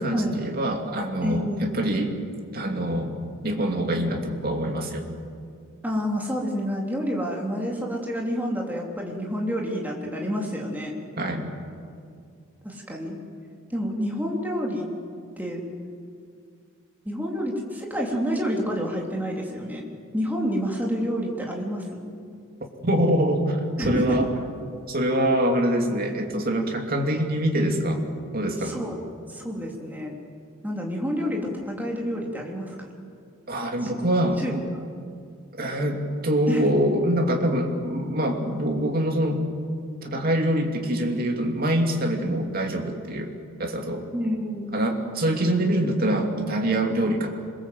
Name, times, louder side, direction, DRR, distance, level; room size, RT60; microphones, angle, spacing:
voice 1, 0.0-2.1 2.5-3.2 3.4-5.0 11.2-11.5 22.8-23.6 23.8-24.3 24.9-28.0 28.3-28.8 33.5-34.4 35.6-39.4 40.0-43.3 43.6-44.0 44.7-47.4, right 1 dB, 45° right, 2 dB, 2.8 m, -24 dB
voice 2, 1.2-1.7 5.8-10.9 12.6-13.2 13.7-14.9 15.4-15.6 17.1-19.9 20.1-21.8 23.8-24.2 28.6-29.0 29.3-30.2 30.6-32.8 33.8-34.0 34.4-34.6 36.5-36.7 44.1-44.7, equal, 10° right, -1 dB, 3.4 m, -28 dB
27.0 x 22.0 x 7.9 m, 2.3 s
head